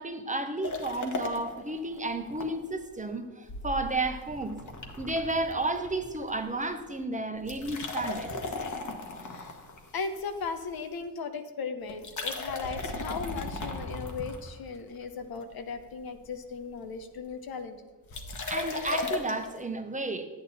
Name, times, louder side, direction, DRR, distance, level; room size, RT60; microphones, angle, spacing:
voice 1, 0.0-4.6 5.0-8.3 18.5-20.3, right 2 dB, 20° right, 6 dB, 0.9 m, -32 dB
sound 1, 0.6-2.5 2.8-2.9 3.5-6.4 6.6-6.9 7.4-10.7 11.9-14.9 15.4-15.9 16.2-16.3 16.5-16.6 16.7-17.0 18.1-19.5, left 3 dB, 50° left, 1.5 m, -37 dB
voice 2, 9.2-9.6 9.9-17.8 18.1-18.2, left 5 dB, 70° left, 8 dB, 1.0 m, -37 dB
10.0 x 8.9 x 4.1 m, 1.3 s
cardioid pair, 90°, 37 cm